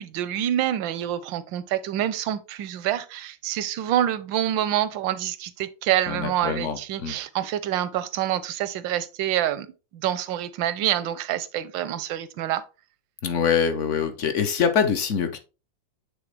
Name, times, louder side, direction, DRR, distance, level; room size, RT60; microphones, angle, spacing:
voice 1, 0.0-9.7 9.9-12.6, right 12 dB, 85° right, 1.3 m, -27 dB
voice 2, 6.1-7.1 13.2-15.4, left 7 dB, 60° left, 0.8 m, -24 dB
8.4 x 3.7 x 3.2 m
omnidirectional pair, 2.0 m